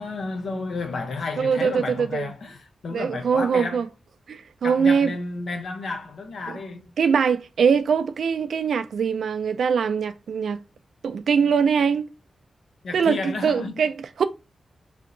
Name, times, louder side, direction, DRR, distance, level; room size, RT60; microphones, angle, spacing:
voice 1, 0.0-3.8 4.6-6.9 12.8-13.8, left 3 dB, 75° left, 0.6 m, -32 dB
voice 2, 1.4-2.3 2.9-3.8 4.3-5.1 6.5-6.6 7.0-10.6 11.0-12.0 12.9-14.2, right 6 dB, 85° right, 0.4 m, -22 dB
3.4 x 2.8 x 3.7 m
wide cardioid pair, 120°, 0 cm